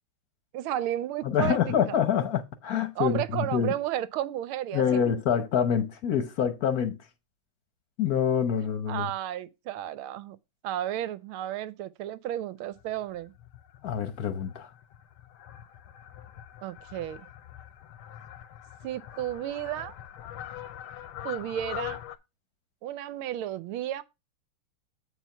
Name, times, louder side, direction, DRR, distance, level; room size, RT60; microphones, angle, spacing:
voice 1, 0.5-1.6 1.9-2.0 3.0-5.1 8.9-10.4 10.6-13.3 16.6-17.2 18.8-19.9 21.2-22.0 22.8-24.0, right 12 dB, 85° right, 1.5 m, -32 dB
voice 2, 1.2-3.7 4.7-7.0 8.0-9.1 13.8-14.7, left 8 dB, 60° left, 1.1 m, -26 dB
Fowl, 12.7-22.2, left 12 dB, 85° left, 1.6 m, -43 dB
8.2 x 4.4 x 5.5 m
omnidirectional pair, 2.3 m